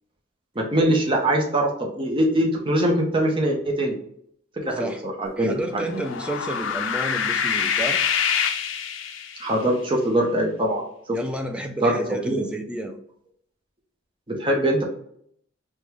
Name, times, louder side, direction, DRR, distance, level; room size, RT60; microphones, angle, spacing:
voice 1, 0.6-4.0 4.6-6.0 9.4-10.8 11.1-11.2 11.8-12.0 12.2-12.5 14.3-14.8, right 1 dB, 25° right, -1 dB, 0.7 m, -22 dB
voice 2, 4.7-5.0 5.4-8.0 11.1-13.0, right 1 dB, 5° right, 4 dB, 0.3 m, -31 dB
sound 1, 5.8-9.6, left 7 dB, 65° left, 0.4 m, -25 dB
5.1 x 2.2 x 3.0 m, 0.68 s
head